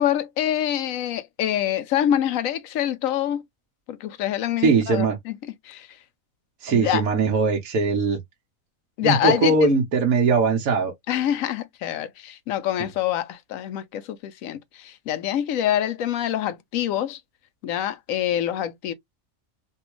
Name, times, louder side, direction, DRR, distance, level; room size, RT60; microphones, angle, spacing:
voice 1, 0.0-3.4 3.9-5.4 5.6-5.9 6.7-7.0 9.0-9.8 11.1-17.2 17.6-18.9, left 11 dB, 75° left, 0.9 m, -25 dB
voice 2, 4.6-5.2 6.6-8.2 9.0-10.9, right 4 dB, 80° right, 1.4 m, -20 dB
3.4 x 2.3 x 3.0 m
omnidirectional pair, 1.5 m